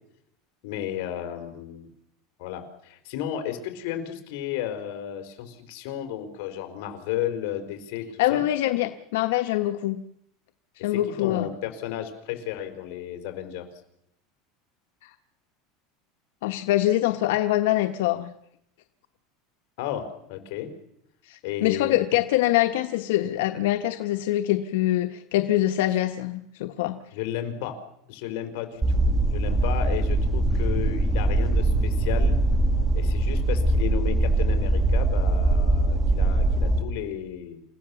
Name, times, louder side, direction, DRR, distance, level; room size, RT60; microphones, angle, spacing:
voice 1, 0.6-1.9 2.4-8.4 10.9-13.7 19.8-20.7 21.4-22.0 27.1-27.8 28.1-29.0 29.3-32.4 32.9-37.6, left 10 dB, 65° left, 6 dB, 4.5 m, -33 dB
voice 2, 8.2-10.0 10.8-11.5 15.0-15.1 16.4-18.3 21.3-27.0, left 14 dB, 80° left, 7 dB, 1.2 m, -24 dB
sound 1, 28.8-36.8, right 2 dB, 15° right, 2.4 m, -22 dB
28.5 x 16.0 x 7.1 m, 0.78 s
supercardioid pair, 150°, 0 cm